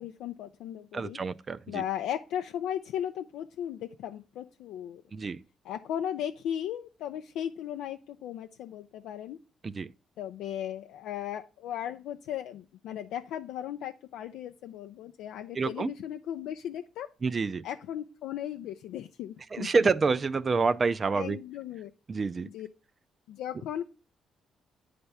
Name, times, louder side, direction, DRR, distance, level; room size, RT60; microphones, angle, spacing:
voice 1, 0.0-1.2 1.7-5.0 5.6-9.4 10.2-17.1 17.6-19.7 21.1-21.9 22.4-22.7 23.3-23.8, left 10 dB, 90° left, 0.4 m, -36 dB
voice 2, 0.9-1.8 5.1-5.4 9.6-9.9 15.6-15.9 17.2-17.6 19.5-21.4 22.1-22.5, right 4 dB, 35° right, 0.4 m, -27 dB
9.6 x 3.4 x 5.5 m
cardioid pair, 90°, 0 cm